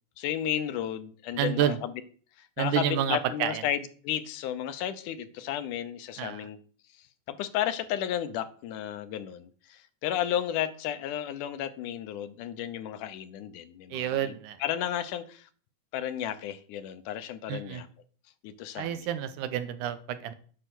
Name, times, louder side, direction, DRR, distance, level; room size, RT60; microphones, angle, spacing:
voice 1, 0.2-1.9 2.4-6.6 7.3-14.3 14.6-15.5 15.9-17.9 18.4-19.1, left 10 dB, 80° left, 11 dB, 2.3 m, -33 dB
voice 2, 1.4-1.8 2.6-3.6 6.2-6.5 13.9-14.6 17.5-17.8 18.7-20.3, right 10 dB, 85° right, 11 dB, 2.3 m, -29 dB
10.0 x 5.7 x 6.1 m, 0.43 s
omnidirectional pair, 3.6 m